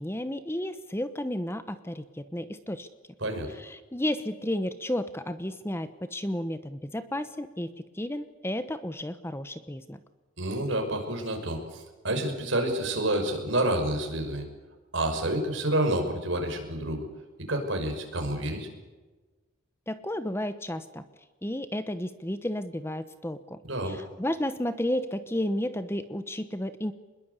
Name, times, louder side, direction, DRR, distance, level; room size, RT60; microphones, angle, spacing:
voice 1, 0.0-2.9 3.5-10.0 19.9-21.0 21.4-23.6 23.8-26.9, left 1 dB, 10° left, 11 dB, 0.9 m, -32 dB
voice 2, 10.4-14.5 14.9-17.0 17.5-18.7 23.6-24.0, right 1 dB, 60° right, 4 dB, 6.0 m, -29 dB
25.5 x 21.5 x 8.3 m, 1.2 s
head